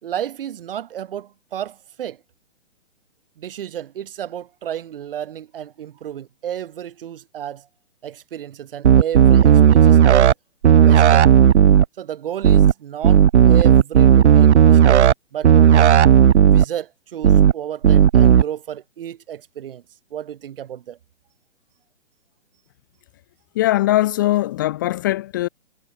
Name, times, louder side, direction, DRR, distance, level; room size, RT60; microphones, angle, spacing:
voice 1, 0.0-2.2 3.4-7.7 8.0-10.3 10.8-11.3 12.0-15.0 15.3-15.9 16.5-19.8 20.1-21.0, right 10 dB, 50° right, 2.2 m, -32 dB
sound 1, 8.8-10.3 10.6-11.8 12.4-12.7 13.0-15.1 15.4-16.6 17.2-17.5 17.8-18.4, right 9 dB, 70° right, 0.8 m, -12 dB
voice 2, 23.5-25.5, left 15 dB, 15° left, 0.6 m, -20 dB
hypercardioid pair, 155°, 36 cm